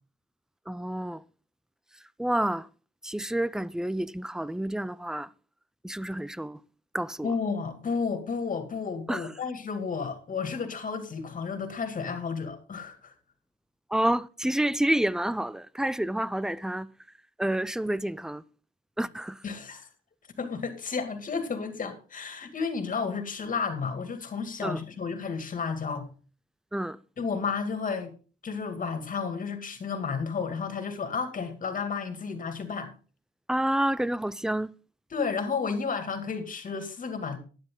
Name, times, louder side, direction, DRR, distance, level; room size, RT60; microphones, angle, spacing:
voice 1, 0.7-1.2 2.2-2.7 3.0-5.3 5.8-6.6 6.9-7.3 9.1-9.2 13.9-16.9 17.4-18.4 19.0-19.4 24.6-24.8 26.7-27.0 33.5-34.7, right 1 dB, 5° right, 0.4 m, -29 dB
voice 2, 7.2-13.1 19.4-19.9 20.4-26.1 27.2-28.1 28.4-32.9 35.1-37.4, left 5 dB, 40° left, 2.4 m, -32 dB
12.0 x 9.8 x 3.9 m
cardioid pair, 90°, 20 cm